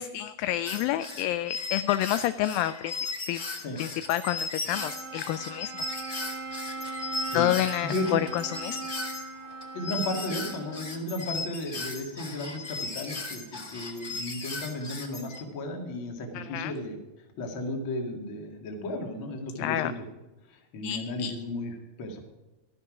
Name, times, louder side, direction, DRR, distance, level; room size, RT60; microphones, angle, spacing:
voice 1, 0.0-2.9 3.3-3.5 3.8-5.8 7.3-8.8 16.3-16.7 19.6-19.9 20.8-21.3, left 13 dB, 80° left, 12 dB, 2.2 m, -29 dB
sound 1, 0.7-15.4, left 3 dB, 55° left, 0.7 m, -36 dB
Bowed string instrument, 4.7-11.1, right 3 dB, 75° right, 4.9 m, -39 dB
voice 2, 7.8-8.2 9.7-17.0 17.4-20.0 20.5-22.2, left 1 dB, 40° left, 2 dB, 2.4 m, -34 dB
13.0 x 12.5 x 4.9 m, 1.1 s
omnidirectional pair, 4.2 m